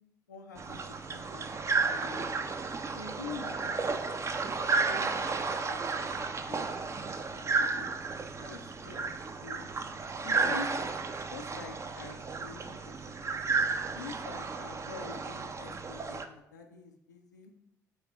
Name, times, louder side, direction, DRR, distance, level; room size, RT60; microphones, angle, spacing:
voice 1, 0.3-1.5 1.8-2.5 2.9-4.0 4.4-5.1 5.5-6.1 6.5-6.8 7.3-7.9 8.4-9.7 10.2-10.7 11.3-13.4 13.9-17.5, left 4 dB, 85° left, 2 dB, 0.4 m, -46 dB
sound 1, 0.6-16.2, right 4 dB, 30° right, 0.5 m, -33 dB
8.9 x 3.6 x 2.9 m, 0.82 s
figure-of-eight pair, 45°, 9 cm